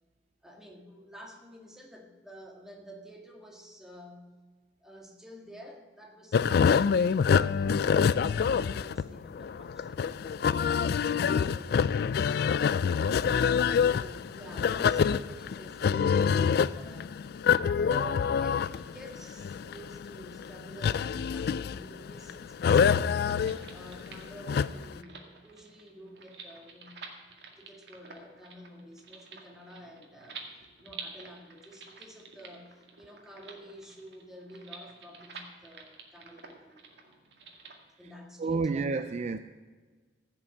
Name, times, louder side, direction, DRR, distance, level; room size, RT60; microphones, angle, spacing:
voice 1, 0.4-4.4 4.8-10.8 11.1-12.8 13.7-17.3 17.8-27.1 27.6-30.5 30.8-37.2 38.0-38.8, equal, 5° right, 1.7 m, -50 dB
sound 1, 6.3-25.0, left 6 dB, 60° left, 0.3 m, -26 dB
sound 2, 23.0-37.8, right 5 dB, 75° right, 1.9 m, -49 dB
voice 2, 38.4-39.4, right 4 dB, 40° right, 0.4 m, -29 dB
15.5 x 6.1 x 8.0 m
head